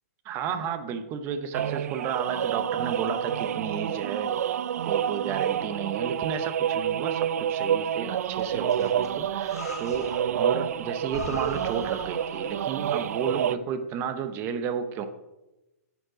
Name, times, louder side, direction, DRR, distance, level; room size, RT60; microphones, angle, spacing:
voice 1, 0.2-4.3 4.9-15.1, right 7 dB, 30° right, 10 dB, 0.7 m, -32 dB
sound 1, 1.5-13.6, right 9 dB, 70° right, 0.4 m, -28 dB
Breathing, 8.2-10.4 10.7-10.8 11.1-12.8, left 4 dB, 90° left, 3.4 m, -41 dB
9.5 x 6.6 x 4.9 m, 1.0 s
hypercardioid pair, 145°, 8 cm